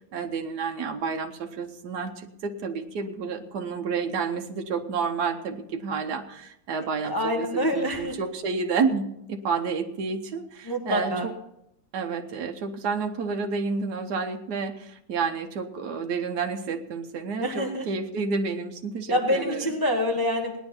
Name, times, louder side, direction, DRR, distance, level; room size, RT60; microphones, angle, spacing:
voice 1, 0.1-11.3 11.9-19.7, right 5 dB, 80° right, 4 dB, 1.5 m, -30 dB
voice 2, 7.0-8.1 10.7-11.3 17.4-17.9 19.1-20.6, equal, 15° left, 1 dB, 1.2 m, -26 dB
18.0 x 10.5 x 4.3 m, 0.78 s
omnidirectional pair, 1.7 m